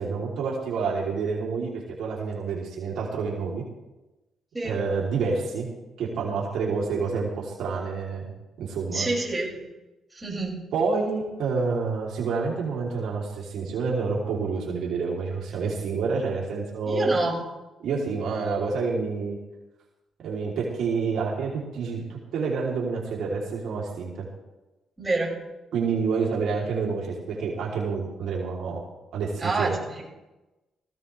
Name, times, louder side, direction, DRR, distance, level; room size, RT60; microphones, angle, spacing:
voice 1, 0.0-3.6 4.6-5.7 6.0-8.3 8.6-9.1 10.7-17.1 17.8-19.4 20.2-24.2 25.7-28.8 29.1-29.8, right 4 dB, 75° right, -4 dB, 3.4 m, -28 dB
voice 2, 8.9-9.6 10.1-10.7 16.9-17.4 25.0-25.3 29.4-30.0, right 2 dB, 15° right, -4 dB, 6.6 m, -27 dB
18.5 x 15.5 x 3.4 m, 1.0 s
cardioid pair, 90°, 0 cm